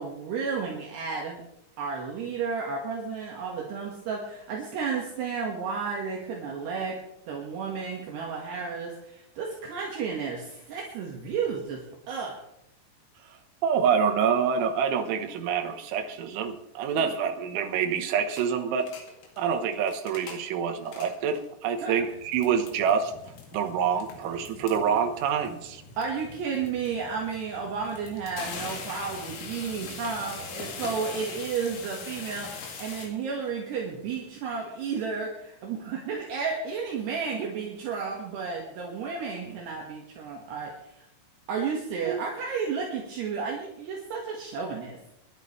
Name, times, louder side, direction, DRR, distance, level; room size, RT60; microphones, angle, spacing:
voice 1, 0.0-1.4 1.8-12.4 21.8-22.0 26.0-41.1 41.5-45.1, right 5 dB, 65° right, -1 dB, 3.5 m, -32 dB
voice 2, 13.6-18.9 19.4-23.1 23.5-25.8 42.1-42.2, right 7 dB, 85° right, 5 dB, 3.6 m, -26 dB
sound 1, 18.4-18.5 18.8-19.4 19.8-20.5 20.8-21.5 22.0-33.1, left 5 dB, 85° left, 4.9 m, -42 dB
26.0 x 11.5 x 3.3 m, 0.82 s
omnidirectional pair, 5.5 m